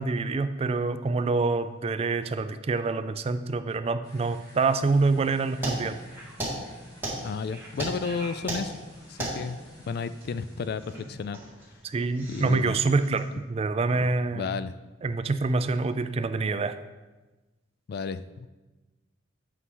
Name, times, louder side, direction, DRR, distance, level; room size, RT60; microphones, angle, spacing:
voice 1, 0.0-6.1 11.8-14.5 15.0-16.8, right 3 dB, 30° right, 11 dB, 0.3 m, -26 dB
sound 1, 4.0-11.0, equal, 20° left, 1.6 m, -52 dB
sound 2, 5.6-13.3, right 1 dB, 10° right, 2.1 m, -37 dB
voice 2, 7.2-8.8 9.1-9.6 9.9-11.4 12.3-12.8 13.9-14.8 17.9-18.5, left 5 dB, 55° left, 14 dB, 0.3 m, -33 dB
8.4 x 5.6 x 3.8 m, 1.1 s
head